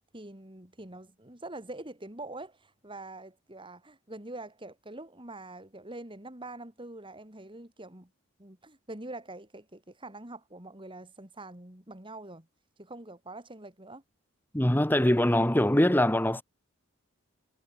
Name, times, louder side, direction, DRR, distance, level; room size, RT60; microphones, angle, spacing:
voice 1, 0.1-8.1 8.4-12.5 12.8-14.0, right 2 dB, 25° right, 3.4 m, -44 dB
voice 2, 14.5-16.4, left 1 dB, 10° left, 1.2 m, -23 dB
head